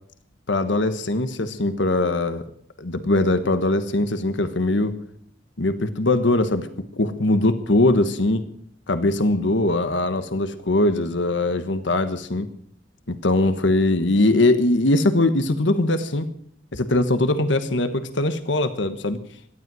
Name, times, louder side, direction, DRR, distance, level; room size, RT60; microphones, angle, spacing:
voice 1, 0.5-2.4 2.8-5.0 5.6-6.7 7.0-8.4 8.9-12.5 13.1-16.3 16.7-19.2, left 2 dB, 85° left, 10 dB, 1.3 m, -21 dB
17.5 x 12.5 x 6.3 m, 0.64 s
head